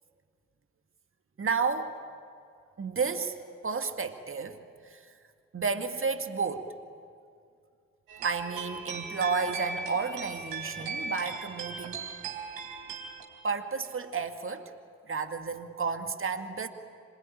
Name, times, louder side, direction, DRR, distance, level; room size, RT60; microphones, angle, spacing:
voice 1, 1.4-1.9 2.8-3.4 3.6-5.1 5.5-6.7 8.2-12.1 13.4-14.7 15.1-16.7, right 5 dB, 35° right, 7 dB, 2.1 m, -32 dB
sound 1, 8.1-13.2, right 4 dB, 65° right, 4.1 m, -38 dB
26.0 x 21.0 x 10.0 m, 2.2 s
figure-of-eight pair, 40°, 38 cm